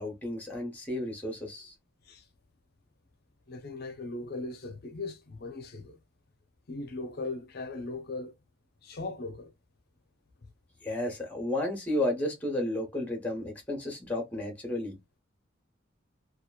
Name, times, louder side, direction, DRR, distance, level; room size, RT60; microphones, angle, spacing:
voice 1, 0.0-1.7 10.8-15.0, left 1 dB, 10° left, 0.9 m, -32 dB
voice 2, 3.5-6.0 6.7-8.3 8.8-9.5, left 3 dB, 50° left, 0.5 m, -38 dB
2.8 x 2.3 x 2.2 m
head